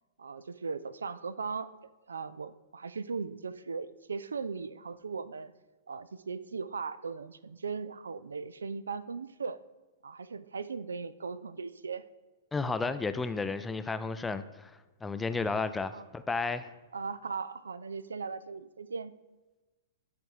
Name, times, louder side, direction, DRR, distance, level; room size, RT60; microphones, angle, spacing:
voice 1, 0.2-1.7 2.1-5.5 5.9-9.6 10.0-12.0 15.9-16.0 16.9-19.1, right 5 dB, 80° right, 16 dB, 0.3 m, -38 dB
voice 2, 12.5-14.7 15.0-16.7, left 4 dB, 10° left, 11 dB, 0.4 m, -32 dB
10.5 x 3.6 x 4.7 m, 1.2 s
figure-of-eight pair, 110°, 0 cm